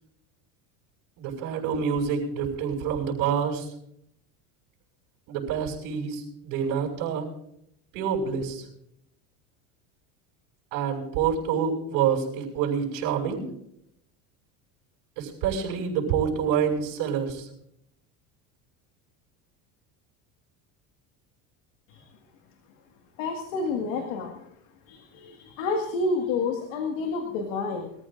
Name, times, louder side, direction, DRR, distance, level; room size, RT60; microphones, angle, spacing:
voice 1, 1.2-3.7 5.3-7.3 7.9-8.6 10.7-13.4 15.2-17.5, right 7 dB, 70° right, -5 dB, 6.1 m, -27 dB
voice 2, 23.2-24.5 24.9-27.9, left 3 dB, 90° left, 4 dB, 1.9 m, -29 dB
23.5 x 14.5 x 2.6 m, 0.75 s
cardioid pair, 145°, 37 cm